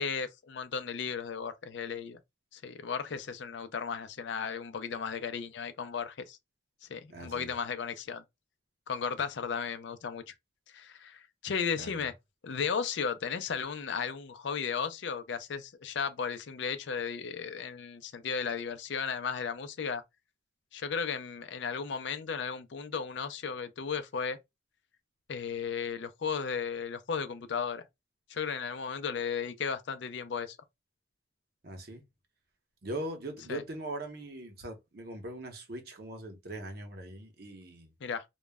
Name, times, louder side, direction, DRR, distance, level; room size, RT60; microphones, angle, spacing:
voice 1, 0.0-2.2 2.5-6.4 6.9-8.2 8.9-10.3 10.7-12.1 12.4-20.0 20.7-24.4 25.3-27.8 28.3-30.6 33.5-33.6 38.0-38.2, left 6 dB, 70° left, 0.4 m, -35 dB
voice 2, 7.1-7.5 11.7-12.1 31.6-32.0 32.8-37.9, right 1 dB, 55° right, 0.7 m, -41 dB
2.2 x 2.0 x 3.3 m
head